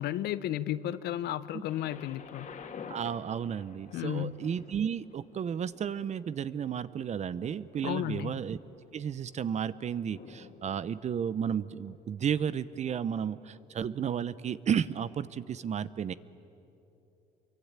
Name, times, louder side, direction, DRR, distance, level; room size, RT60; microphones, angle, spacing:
voice 1, 0.0-2.5 3.9-4.3 7.8-8.4, left 12 dB, 75° left, 15 dB, 0.9 m, -33 dB
Thunder, 1.7-13.5 14.3-14.4, left 6 dB, 45° left, 2.5 m, -52 dB
voice 2, 2.9-8.6 8.9-16.1, right 8 dB, 40° right, 16 dB, 0.8 m, -33 dB
27.0 x 23.5 x 8.9 m, 2.9 s
cardioid pair, 110°, 17 cm